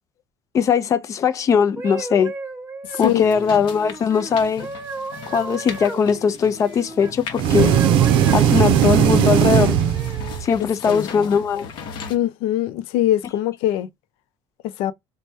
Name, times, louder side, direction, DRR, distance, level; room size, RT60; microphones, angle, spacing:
voice 1, 0.5-2.3 3.0-4.7 5.3-7.7 8.3-9.8 10.4-11.7, left 6 dB, 35° left, 0.5 m, -20 dB
sound 1, 1.6-7.1 7.5-10.4 11.1-11.3, right 3 dB, 20° right, 0.8 m, -35 dB
voice 2, 2.9-3.3 10.9-11.4 12.1-13.9 14.6-14.9, left 13 dB, 85° left, 0.5 m, -23 dB
sound 2, 3.0-12.2, left 6 dB, 55° left, 0.9 m, -37 dB
sound 3, 7.4-10.5, right 9 dB, 65° right, 0.5 m, -17 dB
3.2 x 2.2 x 4.2 m
cardioid pair, 145°, 9 cm